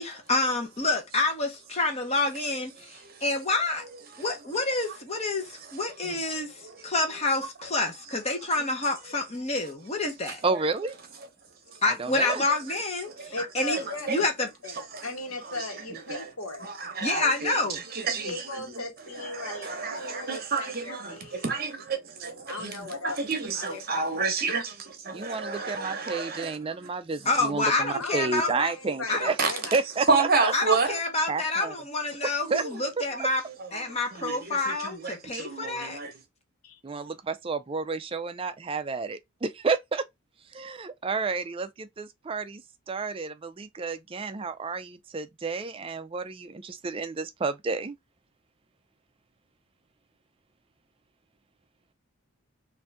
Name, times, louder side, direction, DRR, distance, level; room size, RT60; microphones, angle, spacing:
voice 1, 0.0-3.8 4.2-10.4 11.8-13.8 14.1-14.5 17.0-17.8 27.2-28.5 29.1-29.3 30.5-33.4 33.7-36.0, left 2 dB, 30° left, 1.0 m, -28 dB
voice 2, 10.4-10.9 11.9-12.4 25.1-29.4 29.7-30.5 31.3-31.7 32.2-32.6 33.0-33.3 36.8-40.0 40.5-42.6 42.9-48.0, right 4 dB, 25° right, 0.3 m, -31 dB
voice 3, 13.3-16.7 18.1-21.7 22.5-24.2 27.9-29.7 36.6-36.8, left 2 dB, 75° left, 1.3 m, -38 dB
voice 4, 16.6-17.6 17.9-18.3 19.3-26.6 29.4-29.5 30.1-31.0 33.1-33.2 33.6-36.1, right 4 dB, 40° right, 0.9 m, -30 dB
3.7 x 2.6 x 3.4 m
head